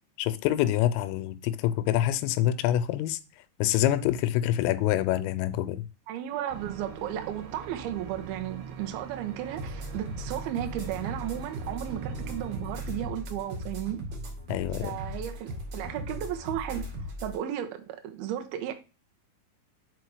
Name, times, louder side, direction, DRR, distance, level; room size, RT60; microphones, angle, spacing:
voice 1, 0.2-3.2 3.6-5.8 14.5-15.0, left 13 dB, 90° left, 3.2 m, -26 dB
voice 2, 6.1-14.0 14.8-16.9 17.2-18.7, right 11 dB, 85° right, 2.2 m, -34 dB
sound 1, 6.5-14.1, right 7 dB, 70° right, 3.1 m, -43 dB
sound 2, 9.6-17.4, equal, 50° right, 2.4 m, -38 dB
6.3 x 5.0 x 4.7 m
omnidirectional pair, 5.7 m